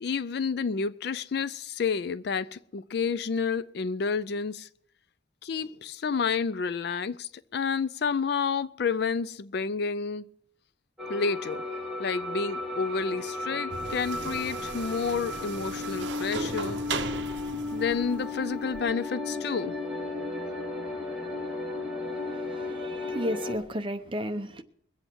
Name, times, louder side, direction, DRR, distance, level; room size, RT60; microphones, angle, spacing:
voice 1, 0.0-4.7 5.4-10.2 11.1-11.6 12.0-16.8 17.7-19.7, left 5 dB, 55° left, 0.4 m, -30 dB
sound 1, 11.0-23.6, left 2 dB, ahead, 2.7 m, -34 dB
sound 2, 13.7-18.8, right 4 dB, 65° right, 0.8 m, -37 dB
voice 2, 22.3-24.6, equal, 25° right, 0.7 m, -33 dB
22.0 x 8.0 x 4.5 m
head